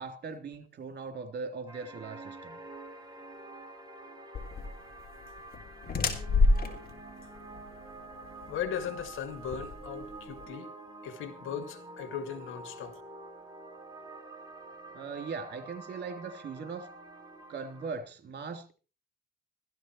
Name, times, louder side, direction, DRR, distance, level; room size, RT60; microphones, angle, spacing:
voice 1, 0.0-2.6 14.9-16.9 17.5-18.7, right 4 dB, 55° right, 3.5 m, -39 dB
sound 1, 1.7-17.9, right 2 dB, 20° right, 5.0 m, -47 dB
sound 2, 4.3-10.4, left 3 dB, 50° left, 3.5 m, -30 dB
voice 2, 8.5-10.7 11.0-13.0, left 8 dB, 90° left, 2.1 m, -38 dB
15.5 x 13.5 x 4.5 m
cardioid pair, 90°, 20 cm